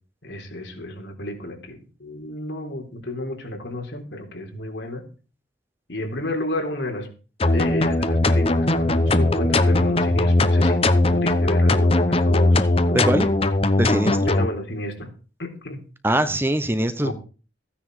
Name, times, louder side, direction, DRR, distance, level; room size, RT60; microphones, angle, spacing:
voice 1, 0.2-5.0 5.9-7.1 7.5-13.3 14.3-15.1 15.4-15.8 17.0-17.1, left 1 dB, 70° left, 3 dB, 3.7 m, -31 dB
sound 1, 7.4-14.5, left 2 dB, 30° left, 0.9 m, -19 dB
voice 2, 12.9-13.3 13.8-14.3 16.0-17.1, right 1 dB, 10° right, 11 dB, 0.8 m, -22 dB
15.0 x 9.9 x 4.9 m, 0.36 s
head